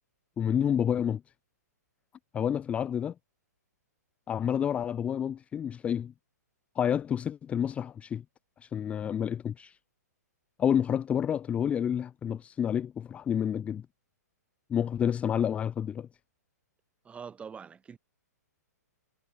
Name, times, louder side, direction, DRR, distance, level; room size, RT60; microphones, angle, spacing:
voice 1, 0.4-1.2 2.3-3.1 4.3-6.1 6.8-8.2 8.6-9.8 10.6-13.9 14.7-16.1, left 8 dB, 15° left, 0.4 m, -29 dB
voice 2, 17.0-18.0, right 6 dB, 15° right, 1.5 m, -44 dB
hypercardioid pair, 135°, 9 cm